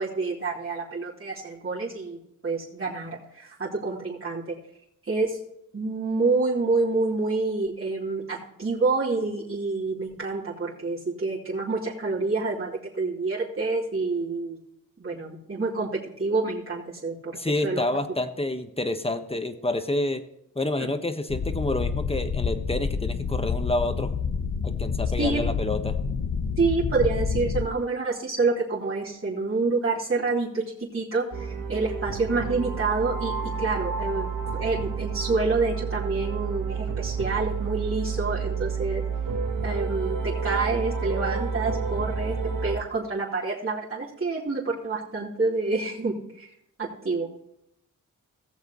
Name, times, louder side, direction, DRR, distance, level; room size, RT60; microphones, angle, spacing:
voice 1, 0.0-4.6 5.0-5.4 5.7-14.6 15.0-17.8 25.2-25.4 26.6-39.0 39.6-42.4 42.6-46.5 46.8-47.3, right 3 dB, 40° right, -7 dB, 3.5 m, -28 dB
voice 2, 17.4-20.2 20.5-24.1 24.6-26.0, left 2 dB, 15° left, 7 dB, 1.3 m, -28 dB
sound 1, 21.3-27.7, left 5 dB, 80° left, 1.0 m, -28 dB
sound 2, 31.3-42.8, right 5 dB, 85° right, 1.5 m, -30 dB
18.0 x 7.9 x 3.1 m, 0.79 s
cardioid pair, 70°, 32 cm